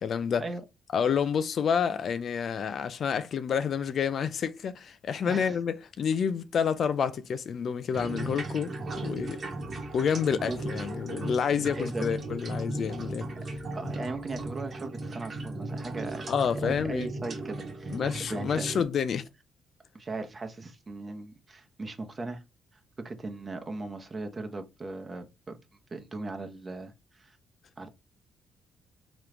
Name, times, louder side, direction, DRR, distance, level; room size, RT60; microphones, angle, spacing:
voice 1, 0.0-0.4 0.9-9.4 9.9-13.3 13.8-13.9 16.3-17.1 17.9-19.3, left 7 dB, 55° left, 0.4 m, -29 dB
voice 2, 5.3-5.6 10.5-10.6 11.8-12.1 13.7-18.0 18.3-18.6 19.9-22.4 23.0-25.6 25.9-27.4 27.8-27.9, right 3 dB, 30° right, 0.9 m, -38 dB
sound 1, 7.9-18.8, right 2 dB, 50° right, 1.1 m, -36 dB
3.7 x 3.0 x 3.3 m
cardioid pair, 90°, 0 cm